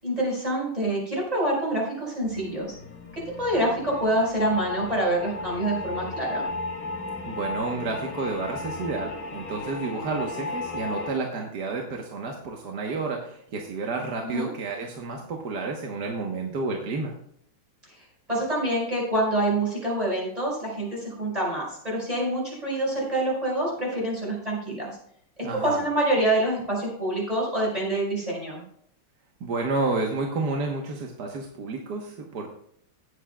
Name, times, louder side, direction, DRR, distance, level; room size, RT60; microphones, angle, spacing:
voice 1, 0.0-2.7 3.1-6.5 14.2-14.5 18.3-25.0 25.6-28.6, right 1 dB, 15° right, -3 dB, 4.9 m, -26 dB
sound 1, 2.2-11.1, left 3 dB, 45° left, 2.4 m, -34 dB
voice 2, 7.3-17.1 25.4-25.8 29.4-32.5, right 3 dB, 55° right, 1 dB, 1.5 m, -30 dB
17.5 x 8.5 x 2.3 m, 0.68 s
omnidirectional pair, 2.4 m